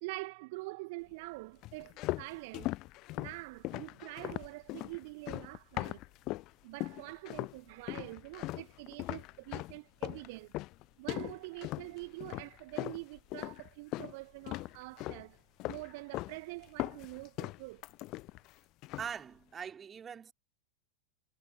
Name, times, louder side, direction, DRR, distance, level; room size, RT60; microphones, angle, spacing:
voice 1, 0.0-2.8 3.2-6.0 6.6-10.5 11.0-15.4 15.7-17.8, right 25 dB, 50° right, 1.9 m, -45 dB
sound 1, 1.6-6.5 6.8-7.6 7.9-14.2 14.5-15.3 15.6-16.4 16.6-18.5 18.8-19.2, left 19 dB, 40° left, 0.7 m, -39 dB
voice 2, 19.0-20.3, right 7 dB, 20° right, 3.7 m, -42 dB
figure-of-eight pair, 90°, 0 cm